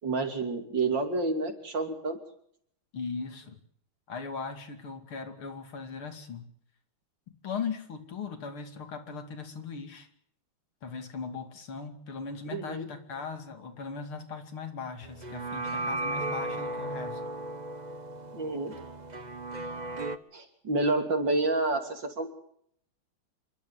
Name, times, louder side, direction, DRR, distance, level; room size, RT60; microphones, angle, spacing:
voice 1, 0.0-2.2 12.5-12.9 18.3-18.7 20.3-22.3, right 3 dB, 60° right, 5 dB, 3.6 m, -29 dB
voice 2, 2.9-3.6 4.1-6.5 7.4-10.1 10.8-17.2, left 5 dB, 90° left, 6 dB, 3.5 m, -38 dB
sound 1, 15.0-20.2, right 2 dB, 30° right, 0.8 m, -35 dB
27.0 x 12.0 x 9.8 m, 0.67 s
omnidirectional pair, 2.3 m